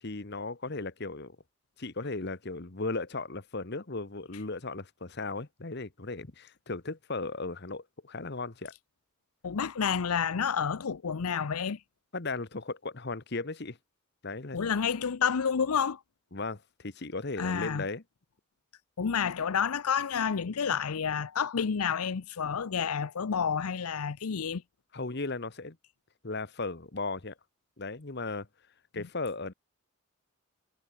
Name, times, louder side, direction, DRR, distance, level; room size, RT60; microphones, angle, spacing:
voice 1, 0.0-1.4 1.8-8.7 12.1-13.8 14.2-14.6 16.3-18.0 24.9-25.8 26.2-27.3 27.8-28.5 28.9-29.5, left 3 dB, 50° left, 1.2 m, -36 dB
voice 2, 9.4-11.8 14.5-16.0 17.4-17.9 19.0-24.6 28.9-29.1, left 7 dB, 80° left, 0.6 m, -29 dB
head